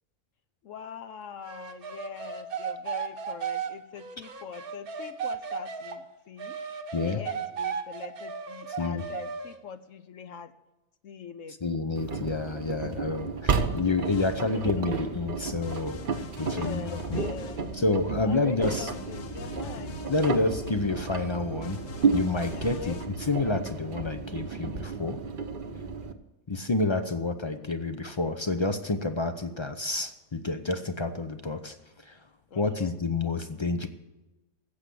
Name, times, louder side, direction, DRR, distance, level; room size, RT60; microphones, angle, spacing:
voice 1, 0.6-6.6 7.0-10.5 11.0-11.6 14.4-14.9 16.4-17.6 18.2-20.5 22.5-23.0 32.5-32.9, left 6 dB, 65° left, 11 dB, 1.0 m, -43 dB
sound 1, 1.4-6.0 6.4-9.6, right 6 dB, 75° right, 1.6 m, -35 dB
voice 2, 8.7-9.0 11.6-17.2 17.7-18.9 20.1-21.8 22.1-23.0 23.3-25.2 26.5-32.2 32.6-33.9, left 3 dB, 45° left, 9 dB, 0.3 m, -29 dB
Engine, 11.9-26.1, right 5 dB, 40° right, 0.9 m, -32 dB
sound 2, 14.0-14.9 15.6-18.1 18.6-23.1, left 3 dB, 85° left, 1.6 m, -44 dB
14.5 x 8.2 x 7.7 m, 1.1 s
omnidirectional pair, 1.6 m